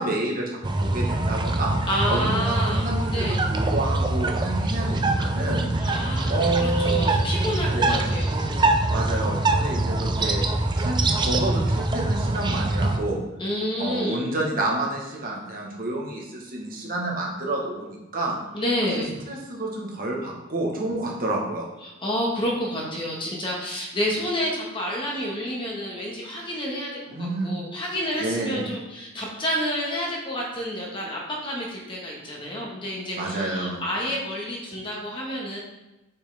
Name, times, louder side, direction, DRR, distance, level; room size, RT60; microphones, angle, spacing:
voice 1, 0.0-1.7 2.1-7.2 7.7-8.1 8.9-10.4 10.8-13.2 13.8-18.4 18.9-21.7 27.1-27.7 28.2-28.7 33.2-33.8, right 2 dB, 45° right, -1 dB, 1.3 m, -29 dB
sound 1, 0.6-13.0, right 2 dB, 20° right, 0.4 m, -24 dB
voice 2, 1.9-2.9 3.1-3.4 5.8-8.6 13.4-14.2 18.5-19.1 21.8-26.9 27.2-35.6, equal, 25° left, -3 dB, 1.5 m, -29 dB
6.3 x 5.9 x 3.5 m, 1.0 s
head